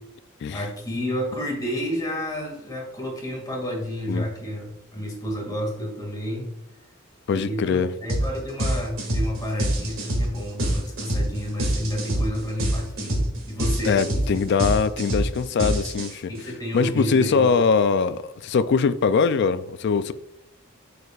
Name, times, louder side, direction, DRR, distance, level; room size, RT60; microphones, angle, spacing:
voice 1, 0.5-6.5 7.3-14.4 16.3-17.6, equal, 20° left, 2.1 m, -30 dB
voice 2, 7.3-7.9 13.8-16.3 16.7-20.1, left 5 dB, 55° left, 0.3 m, -22 dB
sound 1, 8.1-8.3 8.6-16.4, right 1 dB, 75° right, 1.8 m, -25 dB
6.7 x 6.4 x 2.4 m
head